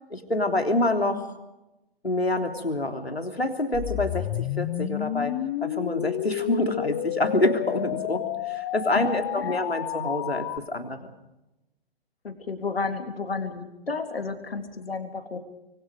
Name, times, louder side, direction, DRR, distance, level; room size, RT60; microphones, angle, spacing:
voice 1, 0.1-1.3 2.0-5.3 5.6-11.1, left 2 dB, 85° left, 5 dB, 3.5 m, -27 dB
sound 1, 3.7-10.6, left 14 dB, 25° left, 1.0 m, -31 dB
voice 2, 8.9-9.5 12.2-15.4, left 4 dB, 70° left, 6 dB, 3.5 m, -32 dB
26.0 x 24.5 x 5.2 m, 0.96 s
figure-of-eight pair, 120°, 30 cm